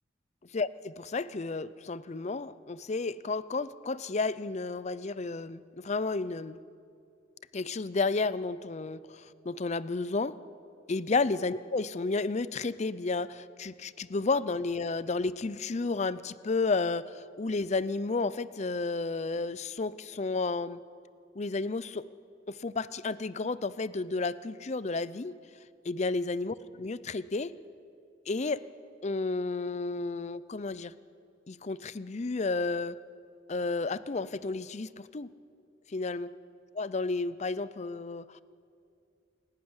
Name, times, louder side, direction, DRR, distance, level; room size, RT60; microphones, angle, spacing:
voice 1, 0.5-6.6 7.5-9.0 9.5-10.3 10.9-20.8 21.4-22.0 22.5-25.4 25.9-27.5 28.3-28.6 29.0-30.9 31.5-33.0 33.5-35.3 35.9-36.3 36.7-38.4, left 3 dB, 35° left, 16 dB, 0.5 m, -32 dB
27.0 x 12.0 x 9.7 m, 2.4 s
head